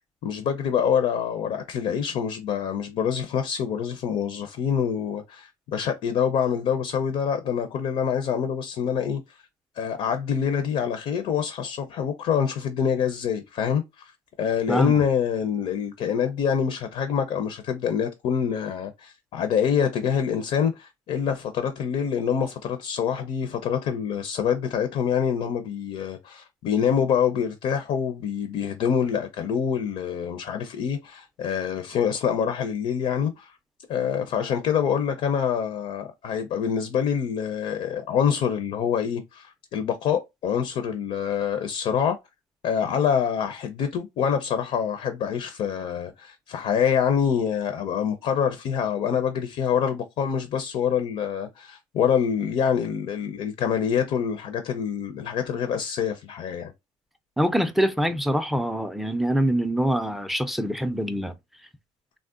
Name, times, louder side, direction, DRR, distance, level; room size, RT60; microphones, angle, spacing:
voice 1, 0.2-9.2 9.8-14.1 14.4-33.5 33.9-42.2 42.6-56.7, left 7 dB, 60° left, 0.5 m, -26 dB
voice 2, 57.4-61.3, equal, ahead, 0.4 m, -24 dB
3.6 x 2.1 x 2.4 m
cardioid pair, 115°, 12 cm